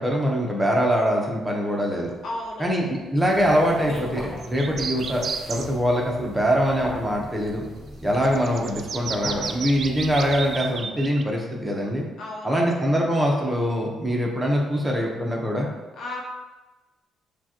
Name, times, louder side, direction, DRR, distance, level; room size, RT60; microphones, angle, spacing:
voice 1, 0.0-2.1 2.6-7.6 8.0-12.1 12.4-15.7, equal, 10° right, -2 dB, 1.0 m, -23 dB
voice 2, 2.2-2.9 12.2-12.9 16.0-16.2, left 1 dB, 65° left, -2 dB, 1.1 m, -34 dB
sound 1, 3.2-10.9, equal, 25° left, 1.2 m, -39 dB
sound 2, 4.4-5.7 8.1-11.2, right 5 dB, 50° right, 0.3 m, -32 dB
6.9 x 2.4 x 3.0 m, 1.2 s
cardioid pair, 90°, 0 cm